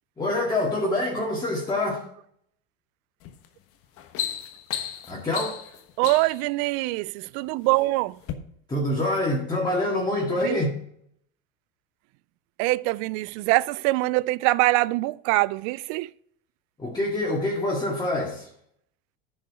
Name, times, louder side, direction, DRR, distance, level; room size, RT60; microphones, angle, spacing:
voice 1, 0.2-2.0 5.1-5.6 8.7-10.8 16.8-18.5, left 1 dB, 15° left, 2.1 m, -26 dB
sound 1, 3.2-3.5 3.8-6.5 7.3-7.8 8.2-8.3, left 10 dB, 50° left, 1.2 m, -34 dB
voice 2, 6.0-8.2 10.4-10.6 12.6-16.1, right 21 dB, 60° right, 0.4 m, -24 dB
10.0 x 5.5 x 4.8 m
supercardioid pair, 105°, 29 cm